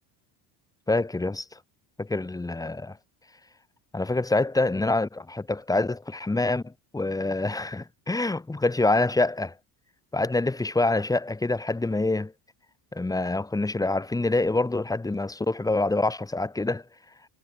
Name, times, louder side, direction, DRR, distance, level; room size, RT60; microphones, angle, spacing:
voice 1, 0.9-1.6 2.0-3.0 3.9-9.5 10.1-12.3 12.9-16.9, left 2 dB, 10° left, 1.8 m, -26 dB
cardioid pair, 145°, 42 cm